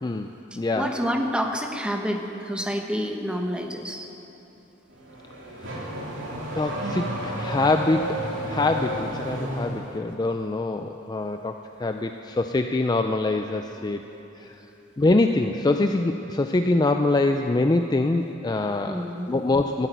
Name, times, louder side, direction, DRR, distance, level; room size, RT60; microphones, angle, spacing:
voice 1, 0.0-0.9 5.7-5.8 6.5-14.0 14.4-14.6 15.0-19.9, left 2 dB, 20° left, 6 dB, 0.4 m, -24 dB
voice 2, 0.5-4.1 18.9-19.3, equal, 5° right, 3 dB, 1.0 m, -28 dB
Car / Accelerating revving vroom, 4.9-9.9, right 1 dB, 70° right, 2.9 m, -32 dB
14.5 x 8.3 x 9.2 m, 3.0 s
head